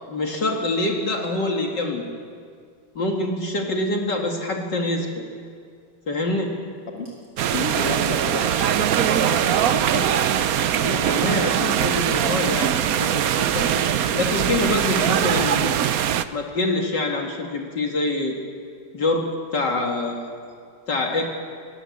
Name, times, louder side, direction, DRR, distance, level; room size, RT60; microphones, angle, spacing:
voice 1, 0.1-2.1 3.0-5.2 6.1-6.5 10.8-13.8 14.1-15.8 16.3-18.4 18.9-19.2 19.5-20.3 20.9-21.3, left 2 dB, 60° left, 1 dB, 2.5 m, -25 dB
Fill (with liquid), 7.1-15.2, equal, 45° right, 7.4 m, -42 dB
sound 1, 7.4-16.2, right 10 dB, 65° right, 0.9 m, -21 dB
voice 2, 7.5-10.1, left 2 dB, 30° left, 1 dB, 2.6 m, -31 dB
21.0 x 18.5 x 8.5 m, 2.1 s
omnidirectional pair, 2.2 m